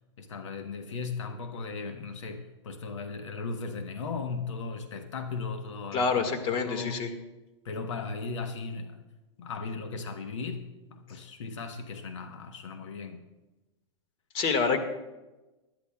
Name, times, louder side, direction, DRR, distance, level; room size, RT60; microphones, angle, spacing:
voice 1, 0.2-6.1 6.5-7.1 7.6-9.0 9.4-10.6 10.9-13.2, left 4 dB, 80° left, 6 dB, 1.2 m, -37 dB
voice 2, 5.9-7.1 14.3-14.8, left 5 dB, 40° left, 6 dB, 1.8 m, -27 dB
19.5 x 12.5 x 2.3 m, 1.1 s
hypercardioid pair, 125°, 15 cm